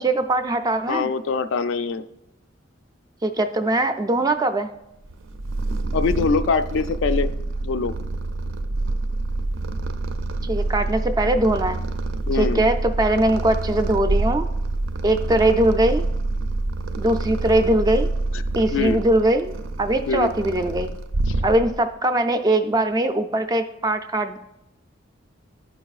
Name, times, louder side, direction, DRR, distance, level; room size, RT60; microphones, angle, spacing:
voice 1, 0.0-1.1 3.2-4.7 10.5-11.8 12.3-14.5 15.0-16.0 17.0-18.1 18.6-20.9 21.4-24.4, right 1 dB, 20° right, 8 dB, 0.3 m, -21 dB
voice 2, 0.9-2.0 5.9-7.3 7.6-7.9 12.3-12.6 18.7-19.0 20.1-20.3, left 4 dB, 70° left, 11 dB, 0.3 m, -23 dB
Purr, 5.1-21.9, right 2 dB, 85° right, 0.4 m, -27 dB
10.5 x 4.6 x 2.4 m, 0.85 s
head